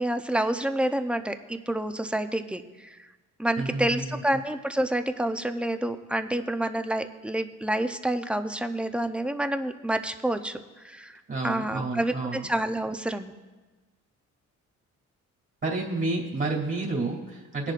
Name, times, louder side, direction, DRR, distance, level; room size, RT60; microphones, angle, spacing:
voice 1, 0.0-3.0 3.4-10.6 10.8-13.3, right 1 dB, 5° right, 8 dB, 0.6 m, -28 dB
voice 2, 3.6-4.2 11.3-12.5 15.6-17.7, right 3 dB, 40° right, -2 dB, 2.8 m, -30 dB
19.0 x 10.5 x 2.5 m, 1.2 s
cardioid pair, 90°, 30 cm